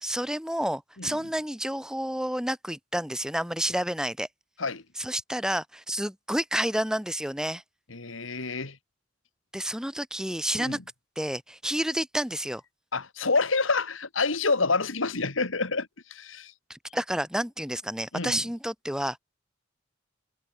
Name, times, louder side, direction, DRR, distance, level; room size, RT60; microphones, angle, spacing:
voice 1, 0.0-4.3 5.0-7.6 9.5-10.8 11.2-12.6 16.7-19.2, equal, 5° right, 4.7 m, -30 dB
voice 2, 7.9-8.8 10.6-10.8 12.9-16.5 18.1-18.4, left 4 dB, 90° left, 2.3 m, -28 dB
head